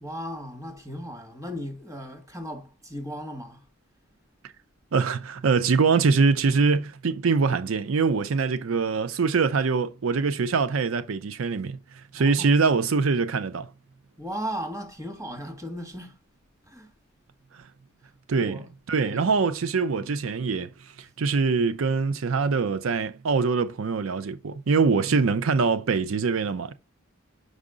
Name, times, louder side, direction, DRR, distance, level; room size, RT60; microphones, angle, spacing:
voice 1, 0.0-3.6 12.1-12.6 14.2-16.2 16.7-16.9 18.3-18.7 19.0-19.3 19.9-20.2 25.0-25.3, equal, 15° right, 1.5 m, -36 dB
voice 2, 4.9-11.8 12.1-13.7 18.3-18.6 18.9-20.7 21.2-26.7, right 4 dB, 85° right, 0.5 m, -23 dB
6.3 x 4.9 x 3.8 m
head